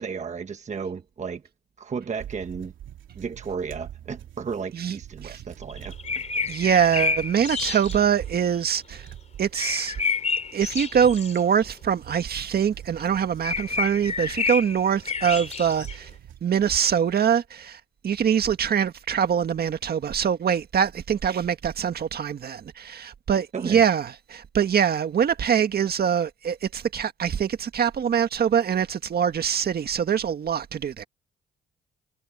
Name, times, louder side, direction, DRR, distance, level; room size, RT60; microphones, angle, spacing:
voice 1, 0.0-1.4 1.8-2.7 3.1-5.9 6.4-6.6 23.5-23.8, right 6 dB, 35° right, 1.2 m, -33 dB
sound 1, 2.1-16.4, right 11 dB, 75° right, 3.2 m, -44 dB
sound 2, 5.6-8.0 9.5-11.4 12.1-12.2 13.0-13.1 13.4-16.0, left 4 dB, 35° left, 3.2 m, -29 dB
voice 2, 6.5-9.1 9.4-10.0 10.5-16.1 16.4-31.0, right 8 dB, 50° right, 1.7 m, -24 dB
cardioid pair, 90°, 20 cm